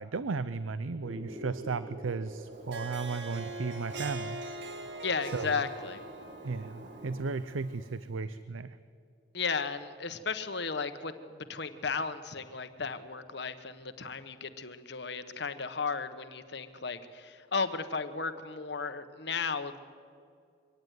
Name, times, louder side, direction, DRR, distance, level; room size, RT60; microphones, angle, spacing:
voice 1, 0.0-4.4 5.3-5.6 6.4-8.8, right 4 dB, 90° right, 13 dB, 0.6 m, -35 dB
sound 1, 1.0-7.3, right 1 dB, 40° right, 1.9 m, -47 dB
Harp, 2.5-8.0, right 2 dB, 65° right, 1.7 m, -43 dB
voice 2, 5.0-6.0 9.3-19.8, left 5 dB, 60° left, 10 dB, 1.2 m, -35 dB
23.5 x 17.5 x 9.4 m, 2.3 s
head